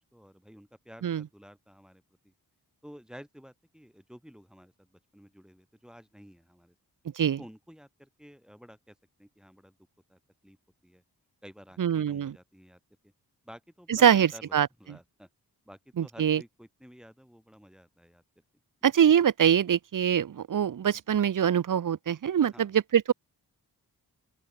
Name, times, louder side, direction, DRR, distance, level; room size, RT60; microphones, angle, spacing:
voice 1, 0.0-2.3 2.8-6.7 7.4-9.8 10.1-10.6 10.8-11.0 11.4-13.1 13.4-15.3 15.6-18.4 22.5-22.7, equal, ahead, 2.9 m, -52 dB
voice 2, 11.8-12.3 13.9-14.7 16.0-16.4 18.8-23.1, right 9 dB, 55° right, 0.7 m, -24 dB
open air
wide cardioid pair, 180°, 38 cm